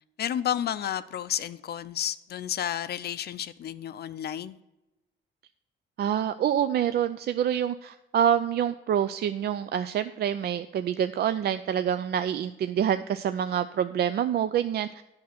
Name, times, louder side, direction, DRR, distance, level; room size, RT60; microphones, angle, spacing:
voice 1, 0.2-4.6, left 10 dB, 55° left, 14 dB, 0.5 m, -31 dB
voice 2, 6.0-15.0, right 9 dB, 55° right, 11 dB, 0.4 m, -26 dB
8.5 x 6.2 x 5.7 m, 1.0 s
cardioid pair, 90°, 20 cm